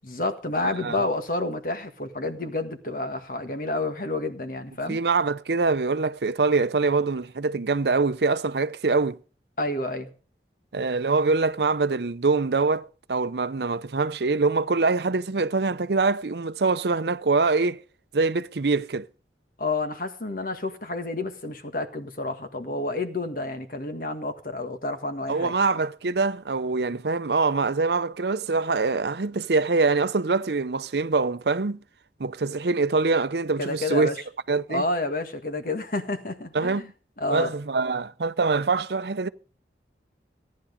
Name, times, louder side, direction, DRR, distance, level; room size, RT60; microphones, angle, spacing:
voice 1, 0.1-5.0 9.6-10.1 19.6-25.5 33.6-34.2 34.7-36.9 37.2-37.5, left 2 dB, 50° left, 1.7 m, -29 dB
voice 2, 4.9-9.2 10.7-17.8 18.1-19.1 25.3-31.8 32.2-34.1 34.5-34.8 36.5-36.9 37.3-39.3, right 4 dB, 70° right, 0.7 m, -24 dB
17.0 x 10.5 x 5.2 m
head